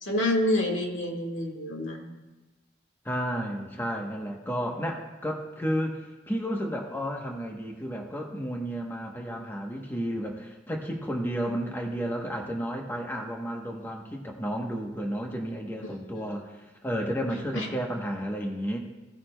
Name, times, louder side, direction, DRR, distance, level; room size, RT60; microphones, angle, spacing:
voice 1, 0.0-2.1 15.8-16.2 17.5-17.7, left 1 dB, 85° left, 1 dB, 1.6 m, -28 dB
voice 2, 3.0-18.8, equal, 10° left, 1 dB, 0.9 m, -32 dB
17.0 x 8.7 x 2.2 m, 1.1 s
head